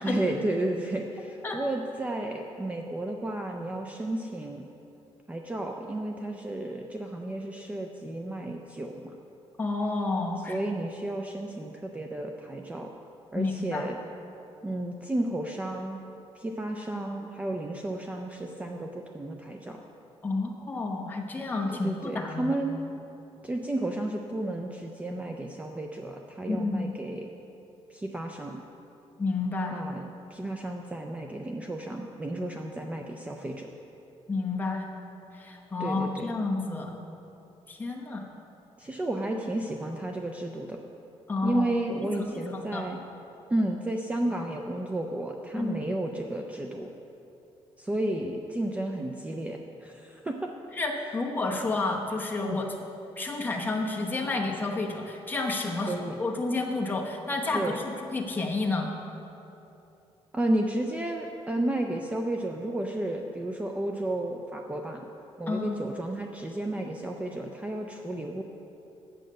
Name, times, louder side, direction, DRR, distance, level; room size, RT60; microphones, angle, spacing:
voice 1, 0.0-4.6 5.3-9.2 10.5-12.9 13.3-14.0 14.6-16.0 16.4-19.8 21.7-22.8 23.4-27.3 27.9-28.6 29.7-30.0 30.3-33.7 35.8-36.3 38.8-40.8 41.4-43.0 43.5-46.9 47.8-50.5 52.4-52.6 55.9-56.2 57.5-57.8 60.3-65.1 65.4-68.4, right 1 dB, 10° right, 2 dB, 0.4 m, -32 dB
voice 2, 9.6-10.6 13.3-13.9 20.2-22.5 26.5-26.9 29.2-29.8 34.3-34.8 35.3-37.0 37.7-38.2 41.3-41.7 42.2-42.9 45.5-45.7 50.7-52.6 53.2-55.9 56.2-57.6 58.1-58.9 65.5-65.8, left 3 dB, 15° left, 0 dB, 0.9 m, -30 dB
8.6 x 7.8 x 6.4 m, 2.9 s
cardioid pair, 175°, 11 cm